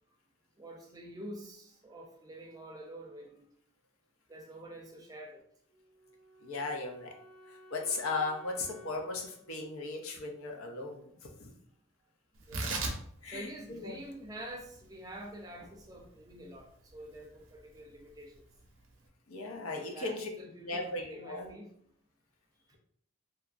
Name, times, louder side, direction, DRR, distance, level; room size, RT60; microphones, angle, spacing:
voice 1, 0.6-3.4 4.3-5.4 12.4-12.7 13.3-18.4 19.7-21.7, right 1 dB, 15° right, 1 dB, 0.4 m, -47 dB
Wind instrument woodwind instrument, 5.6-10.7, equal, 40° left, 0.8 m, -57 dB
voice 2, 6.4-7.1 7.7-11.1 13.2-14.0 19.3-20.3 20.7-21.5, left 3 dB, 80° left, 3 dB, 0.6 m, -37 dB
Tearing, 12.3-19.1, right 3 dB, 70° right, 0.5 m, -42 dB
2.9 x 2.4 x 2.4 m, 0.65 s
head